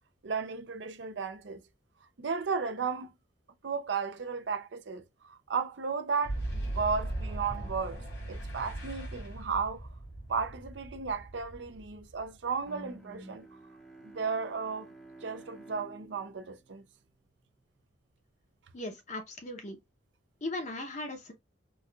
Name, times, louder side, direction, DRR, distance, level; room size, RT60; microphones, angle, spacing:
voice 1, 0.2-1.6 2.2-3.1 3.6-9.9 10.3-13.5 14.0-14.9 15.2-16.8, right 5 dB, 65° right, 0.5 m, -34 dB
Boom, 6.2-12.8, right 1 dB, 70° left, 1.7 m, -39 dB
Bowed string instrument, 12.6-17.7, right 2 dB, ahead, 0.6 m, -51 dB
voice 2, 18.7-19.8 20.4-21.3, left 2 dB, 40° left, 0.7 m, -38 dB
4.1 x 2.3 x 2.3 m
head